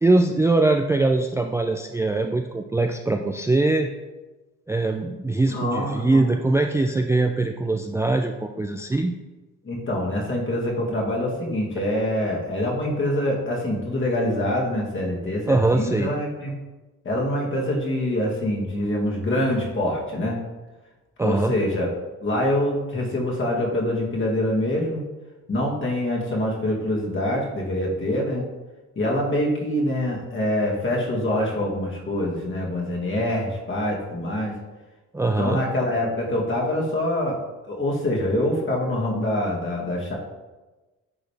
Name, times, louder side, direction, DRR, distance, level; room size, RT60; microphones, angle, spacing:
voice 1, 0.0-3.9 4.7-9.1 15.5-16.1 21.2-21.5 35.1-35.6, right 2 dB, 10° right, 4 dB, 0.4 m, -22 dB
voice 2, 5.4-6.3 9.6-16.5 17.0-20.4 21.2-21.9 22.2-25.0 25.5-28.4 29.0-34.5 35.4-37.4 37.6-40.1, left 1 dB, 40° left, -2 dB, 2.1 m, -25 dB
9.4 x 4.1 x 3.4 m, 1.2 s
cardioid pair, 90°, 30 cm